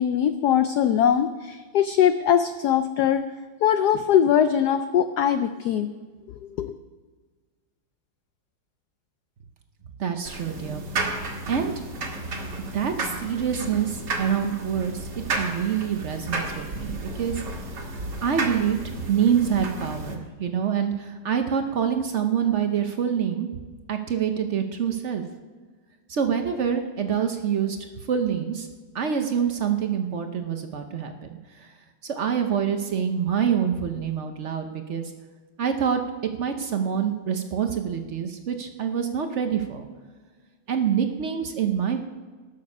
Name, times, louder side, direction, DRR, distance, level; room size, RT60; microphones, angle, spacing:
voice 1, 0.0-3.2 3.6-5.9 6.6-6.7, left 9 dB, 80° left, 10 dB, 0.9 m, -21 dB
voice 2, 10.0-10.8 11.5-11.7 12.7-17.4 18.2-23.6 23.9-25.2 26.1-27.8 28.1-28.7 28.9-31.7 32.0-35.1 35.6-36.0 36.4-39.9 40.7-42.0, right 8 dB, 75° right, 6 dB, 0.6 m, -26 dB
sound 1, 10.3-20.1, right 2 dB, 55° right, 2.1 m, -32 dB
19.0 x 6.8 x 5.4 m, 1.4 s
omnidirectional pair, 2.3 m